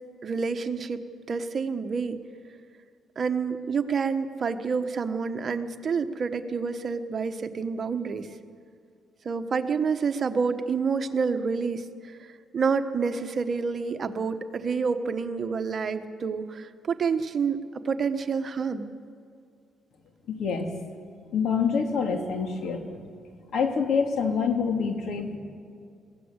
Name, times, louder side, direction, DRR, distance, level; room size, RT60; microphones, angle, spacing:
voice 1, 0.2-2.2 3.2-8.3 9.2-12.2 12.5-17.6 17.8-18.9, right 5 dB, 45° right, 8 dB, 1.3 m, -28 dB
voice 2, 20.3-20.8 21.3-22.9 23.5-25.4, left 5 dB, 70° left, 5 dB, 2.5 m, -26 dB
21.5 x 17.0 x 8.1 m, 2.3 s
cardioid pair, 90°, 0 cm